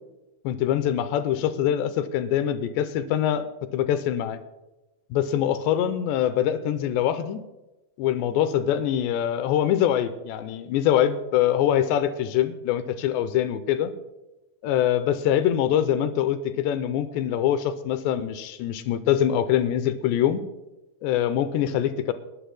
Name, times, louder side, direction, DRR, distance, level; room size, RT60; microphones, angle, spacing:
voice 1, 0.4-3.5 3.7-4.4 5.1-7.4 8.0-13.9 14.6-20.4 21.0-22.1, left 10 dB, 85° left, 11 dB, 2.7 m, -24 dB
29.5 x 11.5 x 2.2 m, 1.0 s
omnidirectional pair, 5.4 m